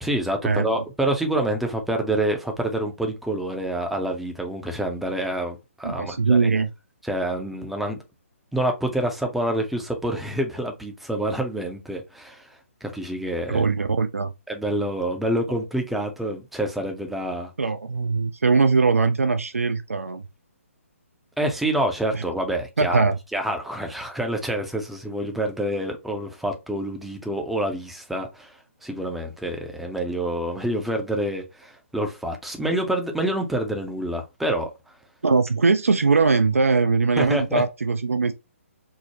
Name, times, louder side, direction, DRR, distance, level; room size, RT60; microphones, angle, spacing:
voice 1, 0.0-6.5 7.0-8.0 8.5-13.6 14.5-17.5 21.4-23.0 23.3-34.7 37.2-37.6, right 1 dB, ahead, 0.5 m, -27 dB
voice 2, 5.8-6.7 13.5-14.3 17.6-20.2 22.1-22.2 22.8-23.2 35.2-38.3, right 4 dB, 75° right, 0.4 m, -21 dB
4.6 x 2.0 x 2.8 m
figure-of-eight pair, 135°, 8 cm